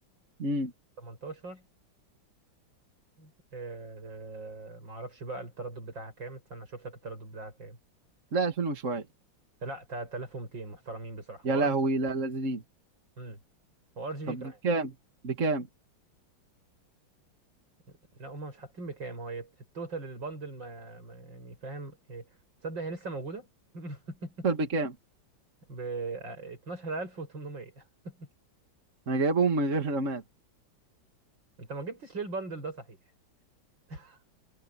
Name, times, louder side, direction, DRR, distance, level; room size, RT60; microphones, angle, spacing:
voice 1, 0.4-0.7 8.3-9.0 11.4-12.6 14.3-14.9 15.2-15.7 24.4-24.9 29.1-30.2, right 3 dB, 40° right, 2.3 m, -28 dB
voice 2, 1.0-1.7 3.2-7.8 9.6-11.7 13.2-13.4 14.0-14.6 17.9-22.3 22.6-23.5 23.7-24.5 25.7-28.3 31.6-33.0 33.9-34.2, right 3 dB, 75° right, 7.6 m, -40 dB
omnidirectional pair, 2.1 m